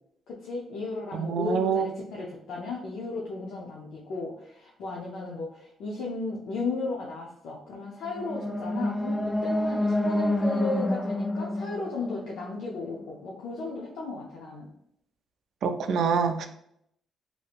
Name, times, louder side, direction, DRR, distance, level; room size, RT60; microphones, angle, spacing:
voice 1, 0.3-14.7, left 3 dB, 80° left, -3 dB, 0.5 m, -35 dB
voice 2, 1.1-1.9 15.6-16.5, right 6 dB, 70° right, 7 dB, 0.3 m, -25 dB
sound 1, 7.9-13.0, left 1 dB, 15° left, 0.3 m, -28 dB
3.4 x 2.7 x 2.4 m, 0.73 s
cardioid pair, 90°, 0 cm